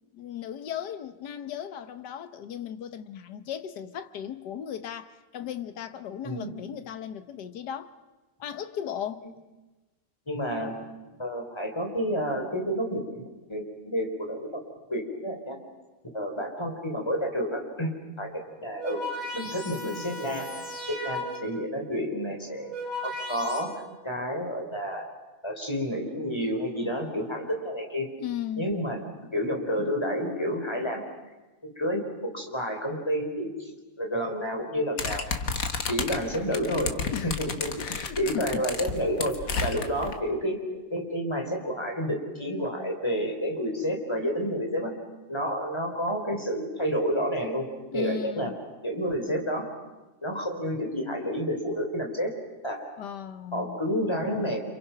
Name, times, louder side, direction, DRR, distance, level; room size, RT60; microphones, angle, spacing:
voice 1, 0.0-8.0 8.4-9.2 28.2-28.7 37.1-37.4 37.8-38.6 47.9-48.5 53.0-53.8, left 9 dB, 85° left, 1.7 m, -36 dB
voice 2, 10.3-10.7 11.2-13.2 13.5-14.6 14.9-15.6 16.1-17.9 18.2-19.0 19.3-20.5 20.9-22.7 23.0-25.1 25.4-28.1 28.6-29.0 29.3-31.1 31.6-33.7 34.0-35.2 35.9-36.9 37.2-44.9 45.3-47.7 47.9-48.5 48.8-49.7 50.2-52.3 52.6-52.8 53.5-54.6, equal, 15° left, 4.0 m, -30 dB
sound 1, 18.5-21.7 22.4-23.6, left 1 dB, 55° right, 8.4 m, -36 dB
sound 2, 35.0-40.1, left 4 dB, 55° left, 1.8 m, -32 dB
30.0 x 27.0 x 5.8 m
omnidirectional pair, 1.8 m